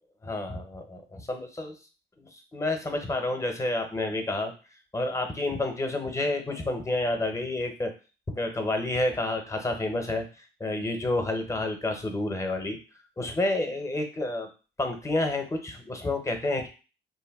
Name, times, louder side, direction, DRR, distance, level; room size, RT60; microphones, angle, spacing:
voice 1, 0.2-1.7 2.2-4.5 4.9-7.9 8.3-12.8 13.2-14.5 14.8-16.7, left 2 dB, 15° left, 5 dB, 0.6 m, -29 dB
2.5 x 2.1 x 3.4 m, 0.34 s
cardioid pair, 90°, 20 cm